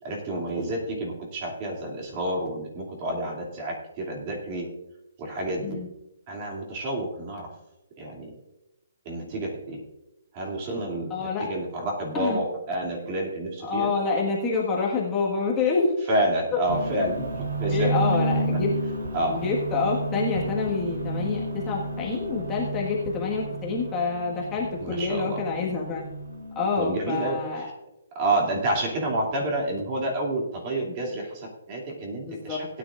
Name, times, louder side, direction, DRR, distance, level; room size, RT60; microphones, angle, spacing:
voice 1, 0.0-4.7 5.2-5.8 6.3-7.5 8.0-8.3 9.0-9.8 10.3-13.9 16.1-18.0 18.5-18.6 19.1-19.4 24.8-25.4 26.8-27.7 28.1-32.7, right 1 dB, 25° right, -1 dB, 2.6 m, -29 dB
voice 2, 11.1-11.5 12.1-12.4 13.6-15.9 17.7-18.7 19.3-26.0 26.5-27.7 32.2-32.6, left 4 dB, 15° left, -4 dB, 1.6 m, -27 dB
sound 1, 16.7-26.9, right 1 dB, 80° right, 3.1 m, -31 dB
18.0 x 10.0 x 2.5 m, 0.95 s
hypercardioid pair, 165°, 0 cm